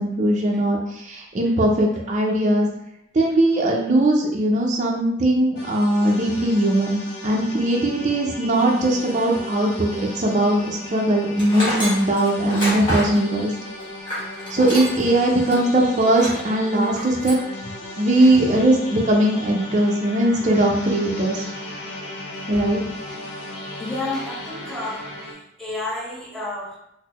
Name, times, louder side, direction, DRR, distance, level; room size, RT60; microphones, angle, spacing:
voice 1, 0.0-2.7 3.1-13.5 14.5-17.4 18.0-21.4 22.5-22.8, right 1 dB, 40° right, -1 dB, 0.5 m, -20 dB
sound 1, 5.6-25.3, left 1 dB, 60° left, 0.7 m, -36 dB
Tools, 11.4-15.1 15.5-15.6 16.1-16.4 16.8-17.5, equal, 25° left, 1.4 m, -28 dB
voice 2, 18.2-18.7 22.3-22.7 23.0-23.2 23.4-23.5 23.8-26.8, left 2 dB, ahead, -6 dB, 0.8 m, -32 dB
4.0 x 2.0 x 2.9 m, 0.78 s
head